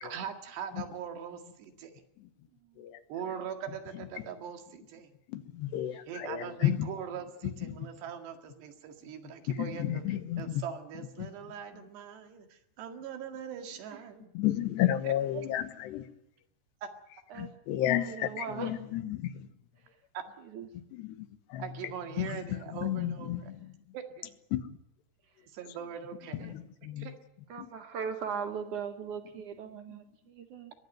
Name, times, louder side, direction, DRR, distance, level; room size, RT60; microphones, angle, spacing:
voice 1, 0.0-1.9 3.1-5.1 6.1-14.3 15.0-15.5 16.8-16.9 20.1-20.2 21.6-23.5 23.9-24.3 25.5-26.6 27.0-27.1, right 8 dB, 80° right, 4.1 m, -41 dB
voice 2, 2.5-2.9 5.9-6.0 9.2-9.3 13.9-14.1 14.9-15.4 17.3-17.5 17.9-18.8 19.8-20.0 20.4-20.7 23.6-23.7 25.2-25.5 26.4-26.5 27.5-30.7, right 6 dB, 60° right, 2.3 m, -40 dB
voice 3, 5.3-6.9 7.8-7.9 9.6-10.6 14.4-16.1 17.4-18.3 18.6-19.5 21.5-21.6 22.2-22.3 22.8-23.6 24.5-24.6 26.4-27.1 27.6-27.7, left 12 dB, 80° left, 3.3 m, -31 dB
21.5 x 15.5 x 9.2 m
omnidirectional pair, 4.9 m